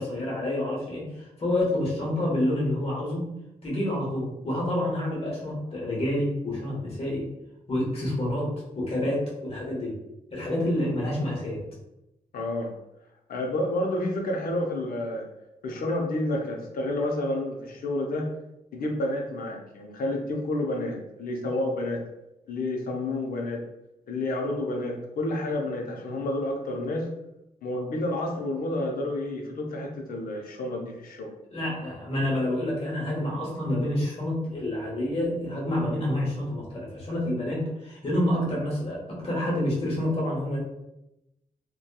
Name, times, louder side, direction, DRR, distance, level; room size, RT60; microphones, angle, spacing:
voice 1, 0.0-3.3 3.6-7.3 7.7-8.5 8.7-10.0 10.3-11.6 31.5-40.6, left 1 dB, 40° left, -4 dB, 1.0 m, -28 dB
voice 2, 12.3-12.7 13.3-15.3 15.6-18.3 18.7-22.0 22.5-23.6 24.1-27.1 27.6-31.3, left 1 dB, 85° left, 1 dB, 0.5 m, -30 dB
2.8 x 2.2 x 2.2 m, 0.89 s
wide cardioid pair, 125°, 15 cm